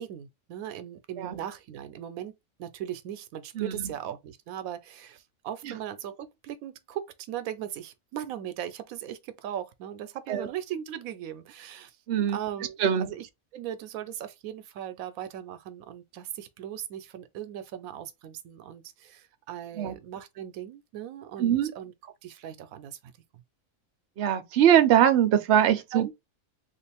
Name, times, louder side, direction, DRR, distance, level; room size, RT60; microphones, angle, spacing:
voice 1, 0.0-12.0 12.3-13.3 13.5-23.1 25.9-26.1, right 10 dB, 85° right, 1.0 m, -38 dB
voice 2, 3.6-3.9 5.6-5.7 10.3-10.5 12.1-12.4 12.8-13.1 19.8-20.0 21.4-21.7 24.2-26.1, right 10 dB, 60° right, 0.8 m, -22 dB
3.5 x 2.5 x 3.3 m
omnidirectional pair, 1.4 m